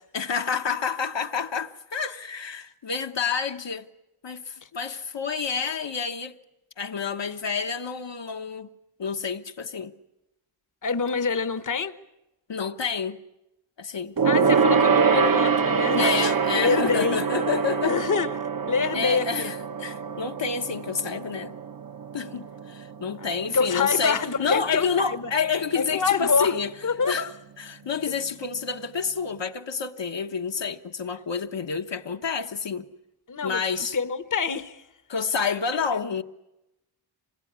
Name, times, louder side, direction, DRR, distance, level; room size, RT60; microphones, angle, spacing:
voice 1, 0.1-3.9 4.2-6.4 6.8-8.7 9.0-9.9 12.5-13.2 13.8-14.1 16.0-17.9 18.9-21.5 22.1-26.7 27.1-27.3 27.6-32.9 33.4-34.0 35.1-36.2, left 5 dB, 60° left, 1.3 m, -28 dB
voice 2, 10.8-11.9 14.2-17.2 17.8-18.4 18.7-19.5 23.2-25.3 25.7-26.5 26.8-27.3 33.3-33.6 33.9-34.8 35.9-36.0, left 5 dB, 40° left, 1.2 m, -26 dB
Gong, 14.2-23.9 24.2-24.5 24.8-24.9, right 6 dB, 45° right, 1.0 m, -25 dB
26.0 x 22.0 x 9.6 m
wide cardioid pair, 125°, 49 cm